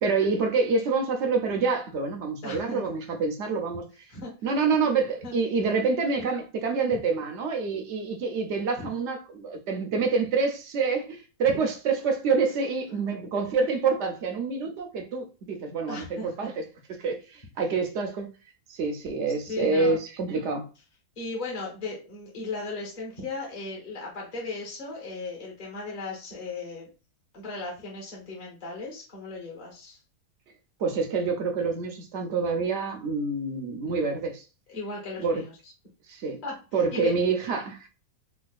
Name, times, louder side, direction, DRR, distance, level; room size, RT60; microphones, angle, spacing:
voice 1, 0.0-3.8 4.4-16.6 16.9-18.3 18.7-20.7 30.8-34.4 35.2-35.4 36.1-36.4 36.7-37.9, right 4 dB, 55° right, 0.8 m, -27 dB
voice 2, 2.4-2.8 3.7-3.8 4.1-4.3 5.2-5.3 6.2-6.3 8.8-8.9 11.6-11.7 15.9-16.5 19.5-20.0 21.2-26.9 27.3-30.0 34.7-35.5 36.4-37.1, left 3 dB, 30° left, 1.1 m, -36 dB
4.2 x 2.3 x 2.4 m
omnidirectional pair, 1.7 m